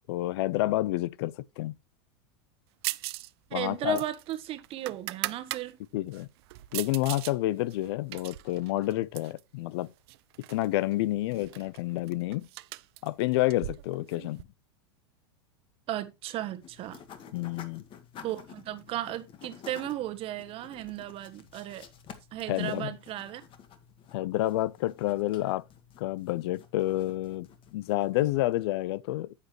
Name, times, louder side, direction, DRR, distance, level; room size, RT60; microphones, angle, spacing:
voice 1, 0.1-1.8 3.5-4.0 5.9-6.3 6.7-9.9 10.5-12.5 13.0-14.4 17.3-17.8 22.5-22.9 24.1-25.7 26.0-29.3, left 16 dB, 65° left, 0.5 m, -29 dB
sound 1, 2.8-3.3 3.6-5.6 6.1-7.3 7.7-9.4 10.1-10.7 10.9-11.0 11.3-14.4, right 19 dB, 65° right, 0.5 m, -38 dB
voice 2, 3.5-5.8 15.9-17.0 18.2-21.9 22.3-23.4, right 13 dB, 40° right, 1.2 m, -35 dB
sound 2, 16.6-28.5, left 7 dB, 35° left, 1.8 m, -51 dB
9.7 x 8.3 x 3.2 m
hypercardioid pair, 115°, 14 cm